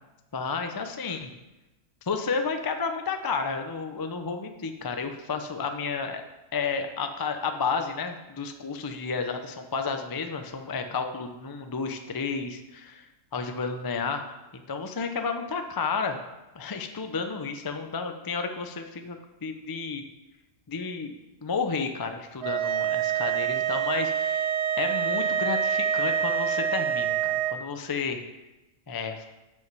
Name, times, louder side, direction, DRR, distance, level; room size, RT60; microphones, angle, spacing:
voice 1, 0.3-1.3 2.0-6.2 6.5-13.0 13.3-14.2 14.7-16.2 16.5-20.0 20.7-21.1 21.4-28.2 28.9-29.2, left 5 dB, 35° left, 6 dB, 0.3 m, -31 dB
sound 1, 22.4-27.6, right 8 dB, 65° right, 0.7 m, -26 dB
6.4 x 5.4 x 6.9 m, 1.0 s
omnidirectional pair, 1.4 m